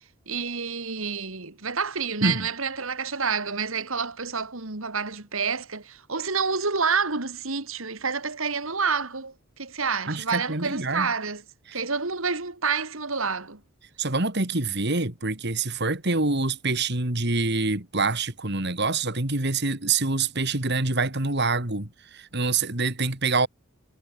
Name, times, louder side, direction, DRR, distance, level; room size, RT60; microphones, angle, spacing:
voice 1, 0.3-11.4 11.7-13.6, right 5 dB, 70° right, 2.4 m, -28 dB
voice 2, 10.1-11.1 11.7-11.8 14.0-23.5, right 3 dB, 50° right, 2.8 m, -26 dB
head